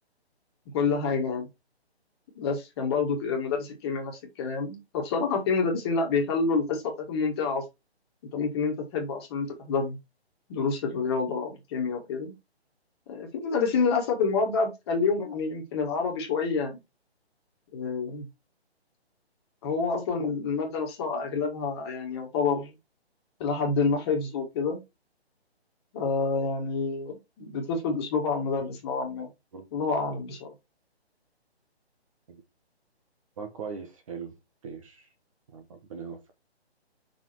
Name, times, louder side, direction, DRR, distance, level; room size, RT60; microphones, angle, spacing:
voice 1, 0.7-1.5 2.4-7.6 8.3-10.0 10.5-12.3 13.1-16.8 17.7-18.3 19.6-22.7 23.4-24.8 25.9-29.3 29.7-30.5, left 4 dB, 25° left, 2.0 m, -28 dB
voice 2, 33.4-34.4 34.6-35.1 35.5-36.3, right 5 dB, 30° right, 1.2 m, -40 dB
6.0 x 5.0 x 4.5 m
hypercardioid pair, 160°, 33 cm